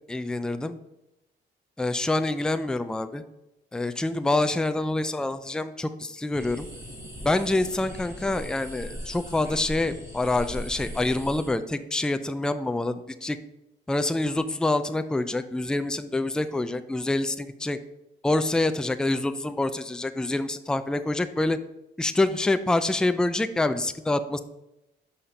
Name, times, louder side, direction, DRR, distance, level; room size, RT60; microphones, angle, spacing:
voice 1, 0.1-0.8 1.8-3.2 3.7-6.7 7.2-13.4 13.9-17.8 18.2-21.6 22.0-24.4, left 2 dB, 5° left, 10 dB, 0.4 m, -26 dB
sound 1, 6.3-11.5, equal, 15° right, 2.4 m, -39 dB
5.6 x 4.3 x 5.1 m, 0.91 s
cardioid pair, 90°, 20 cm